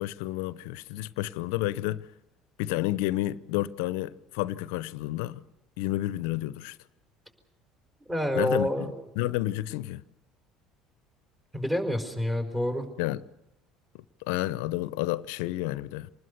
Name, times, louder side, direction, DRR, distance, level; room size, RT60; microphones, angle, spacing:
voice 1, 0.0-2.1 2.6-5.4 5.8-6.8 8.4-10.0 13.0-13.2 13.9-16.1, left 16 dB, 75° left, 0.7 m, -30 dB
voice 2, 8.1-8.9 11.5-12.8, equal, 15° right, 4.7 m, -28 dB
27.0 x 20.0 x 6.8 m
hypercardioid pair, 70°, 0 cm